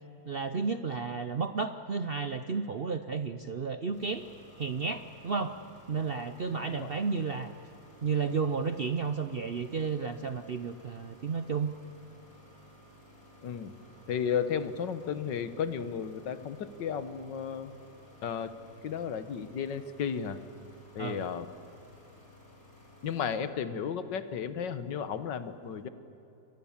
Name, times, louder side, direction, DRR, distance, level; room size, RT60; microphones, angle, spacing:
voice 1, 0.2-4.3 4.6-5.5 5.9-7.5 8.0-11.7 21.0-21.3, right 5 dB, 75° right, 9 dB, 0.5 m, -32 dB
sound 1, 3.9-23.4, equal, 45° left, 5.0 m, -56 dB
voice 2, 13.4-13.7 14.1-17.7 18.2-18.5 18.8-20.4 21.0-21.5 23.0-25.9, left 7 dB, 65° left, 12 dB, 1.8 m, -33 dB
29.5 x 22.5 x 7.3 m, 2.9 s
omnidirectional pair, 2.1 m